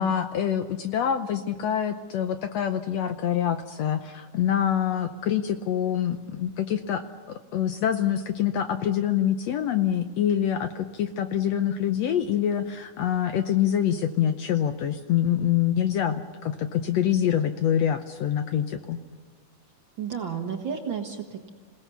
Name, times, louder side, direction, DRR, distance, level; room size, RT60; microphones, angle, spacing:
voice 1, 0.0-7.0 7.5-19.0, left 9 dB, 70° left, 8 dB, 1.7 m, -25 dB
voice 2, 20.0-21.5, right 7 dB, 50° right, 3 dB, 1.7 m, -32 dB
27.5 x 17.5 x 6.9 m, 1.4 s
omnidirectional pair, 3.6 m